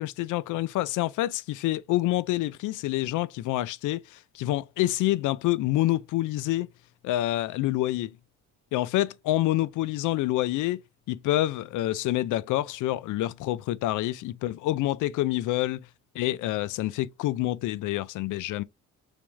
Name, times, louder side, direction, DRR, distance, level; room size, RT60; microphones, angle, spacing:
voice 1, 0.0-6.7 7.0-8.2 8.7-10.8 11.1-15.9 16.1-18.6, left 15 dB, 80° left, 0.5 m, -27 dB
3.5 x 3.5 x 3.2 m
cardioid pair, 90°, 30 cm